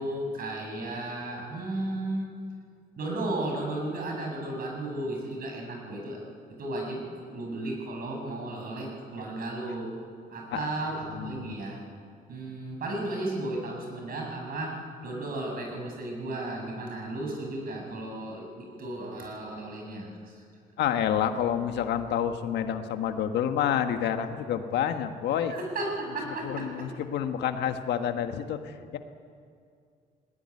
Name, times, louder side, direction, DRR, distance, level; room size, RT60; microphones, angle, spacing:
voice 1, 0.0-2.3 3.0-6.2 6.5-9.9 10.3-11.8 12.3-20.4 25.4-26.9, right 2 dB, 60° right, 1 dB, 6.9 m, -34 dB
voice 2, 11.2-11.5 20.8-25.5 26.4-29.0, left 9 dB, 85° left, 7 dB, 1.5 m, -28 dB
20.0 x 19.0 x 9.8 m, 2.3 s
cardioid pair, 105°, 17 cm